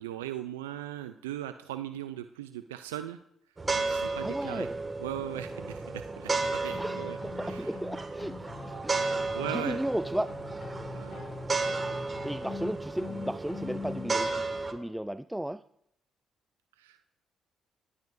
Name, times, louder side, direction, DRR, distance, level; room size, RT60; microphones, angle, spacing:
voice 1, 0.0-3.2 3.7-4.7 5.0-7.2 7.4-7.7 9.3-9.8 10.9-11.3 16.8-17.0, right 12 dB, 90° right, 11 dB, 0.4 m, -38 dB
sound 1, 3.6-14.7, right 3 dB, 30° right, 1.9 m, -33 dB
voice 2, 4.2-4.8 6.8-9.1 9.5-10.3 12.2-15.6, right 1 dB, 5° right, 14 dB, 0.4 m, -35 dB
sound 2, 6.7-14.1, left 5 dB, 50° left, 2.4 m, -43 dB
19.0 x 12.0 x 2.6 m, 0.75 s
hypercardioid pair, 45°, 0 cm